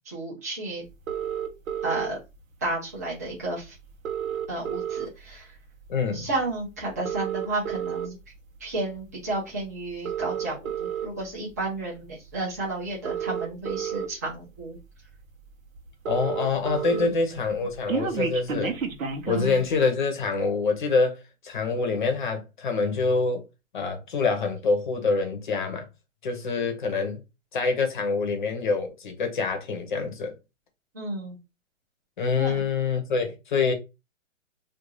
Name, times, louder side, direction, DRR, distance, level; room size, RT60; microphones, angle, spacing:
voice 1, 0.1-0.8 1.8-2.2 2.6-3.7 4.5-5.6 6.1-8.2 8.6-14.8 16.9-17.1 19.3-19.6 30.9-31.4 32.3-32.6, right 2 dB, 15° right, 0.5 m, -32 dB
sound 1, 1.1-2.1 3.3-3.4 3.6-3.7 3.9-5.3 5.8-6.1 6.9-8.1 8.8-9.0 9.9-11.1 12.3-12.4 12.9-14.1 14.7-14.8 15.1-15.2 15.5-15.6 15.8-17.1 17.4-19.5, right 8 dB, 85° right, 0.8 m, -30 dB
voice 2, 5.9-6.3 16.1-18.8 19.3-23.4 23.7-25.9 26.2-27.2 27.5-30.3 32.2-33.7, left 4 dB, 40° left, 0.7 m, -26 dB
2.5 x 2.3 x 3.0 m
hypercardioid pair, 165°, 40 cm